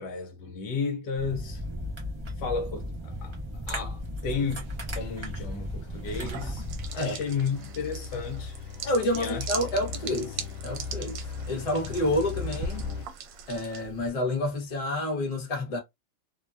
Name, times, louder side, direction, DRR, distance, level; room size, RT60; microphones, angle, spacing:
voice 1, 0.0-1.6 2.4-8.7 9.1-9.5, left 5 dB, 70° left, 1.2 m, -33 dB
sound 1, 1.2-6.9, equal, 45° right, 0.3 m, -35 dB
sound 2, 3.4-13.1, left 5 dB, 85° left, 0.7 m, -40 dB
sound 3, 6.0-14.1, right 4 dB, 80° right, 1.3 m, -40 dB
voice 2, 8.8-11.2 11.5-12.9 13.5-15.8, left 1 dB, 30° left, 0.7 m, -29 dB
3.0 x 2.2 x 2.4 m
omnidirectional pair, 2.0 m